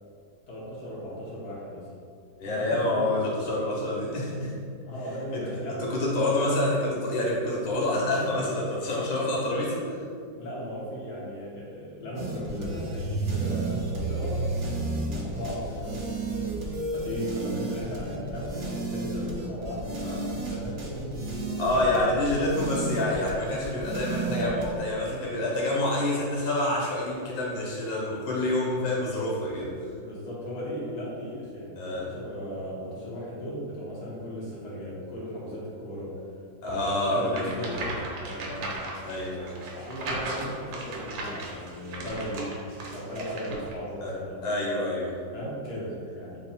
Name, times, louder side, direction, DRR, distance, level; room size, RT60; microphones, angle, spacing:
voice 1, 0.5-1.8 2.4-3.1 4.9-6.3 10.4-16.3 16.9-21.9 24.2-24.6 29.9-36.1 36.6-38.8 39.7-42.5 42.9-44.4 45.3-46.4, equal, 65° left, -7 dB, 1.4 m, -36 dB
voice 2, 2.4-4.5 5.3-10.0 20.0-20.2 21.6-29.8 31.8-32.1 36.6-37.5 37.8-37.9 39.0-39.6 44.0-44.1 44.4-45.2, left 1 dB, 80° left, -4 dB, 1.6 m, -27 dB
sound 1, 12.2-24.7, right 3 dB, 70° right, 0.6 m, -32 dB
sound 2, 37.3-43.7, right 2 dB, 85° right, 1.4 m, -37 dB
3.6 x 2.0 x 4.1 m, 2.3 s
omnidirectional pair, 2.0 m